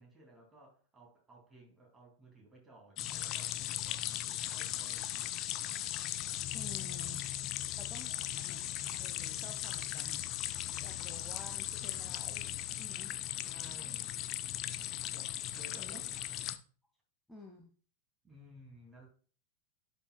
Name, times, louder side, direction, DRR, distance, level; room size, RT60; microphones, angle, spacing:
voice 1, 0.0-5.3 7.7-7.8 13.5-14.3 15.1-16.1 18.2-19.1, right 1 dB, 15° right, 1 dB, 2.5 m, -57 dB
sound 1, 3.0-16.6, left 13 dB, 35° left, 0.5 m, -38 dB
voice 2, 6.5-7.2 7.8-10.3 10.8-13.2 15.8-16.0 17.3-17.7, left 2 dB, 5° left, 0 dB, 1.0 m, -52 dB
11.5 x 5.0 x 2.2 m, 0.42 s
figure-of-eight pair, 90°, 0 cm